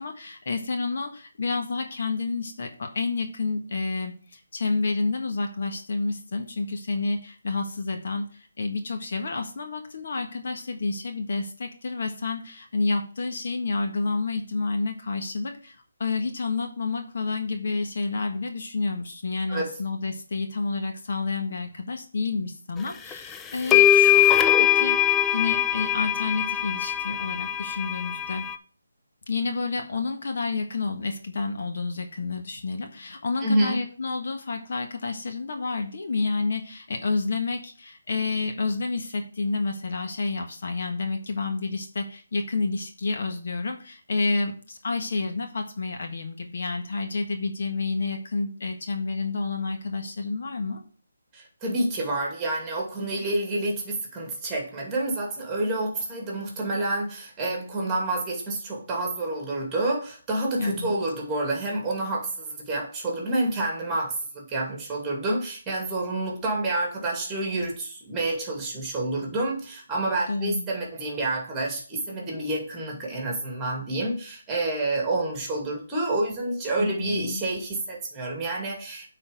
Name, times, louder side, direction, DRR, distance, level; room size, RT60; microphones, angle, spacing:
voice 1, 0.0-25.0 25.3-28.4 29.3-50.8 60.6-60.9 70.3-70.7 76.8-77.4, left 3 dB, 55° left, 4 dB, 1.5 m, -29 dB
sound 1, 23.1-23.2 23.7-28.5, left 11 dB, 10° left, 0.4 m, -21 dB
voice 2, 33.4-33.8 51.3-79.1, right 2 dB, 10° right, -1 dB, 2.4 m, -28 dB
8.9 x 4.2 x 5.2 m, 0.41 s
figure-of-eight pair, 160°, 0 cm